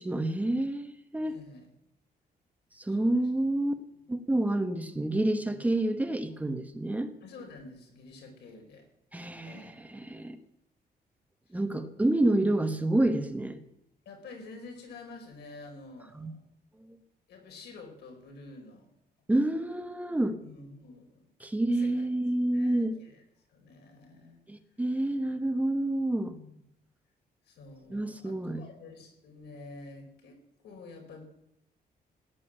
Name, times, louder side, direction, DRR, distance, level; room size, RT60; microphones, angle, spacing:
voice 1, 0.0-1.3 2.8-3.7 4.1-7.1 9.1-9.7 10.0-10.4 11.5-13.6 16.2-16.3 19.3-20.4 21.4-23.0 24.5-26.4 27.9-28.6, right 1 dB, 10° right, 7 dB, 1.0 m, -28 dB
voice 2, 1.2-1.7 2.8-3.5 3.9-4.0 5.5-5.6 7.2-8.9 9.4-9.8 11.5-11.9 14.0-16.4 17.3-18.9 20.4-21.3 21.7-22.1 22.5-23.2 23.5-24.4 26.3-26.6 27.4-31.2, left 3 dB, 90° left, 3 dB, 5.1 m, -49 dB
16.5 x 10.5 x 7.6 m, 0.79 s
cardioid pair, 175°, 17 cm